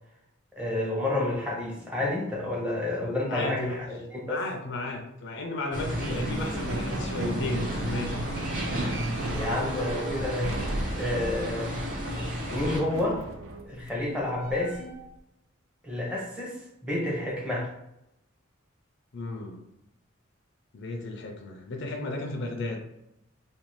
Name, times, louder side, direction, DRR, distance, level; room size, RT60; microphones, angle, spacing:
voice 1, 0.6-4.4 9.3-10.6 10.9-11.8 12.5-13.2 13.6-14.9 15.8-16.6 16.8-17.7, left 1 dB, 5° right, -4 dB, 0.8 m, -30 dB
voice 2, 3.3-3.8 4.2-8.2 19.1-19.6 20.7-22.8, left 2 dB, 60° left, 2 dB, 0.5 m, -34 dB
sound 1, 5.7-12.8, equal, 40° right, 0.8 m, -33 dB
sound 2, 6.0-15.1, right 2 dB, 75° right, 0.4 m, -36 dB
2.6 x 2.4 x 3.1 m, 0.83 s
head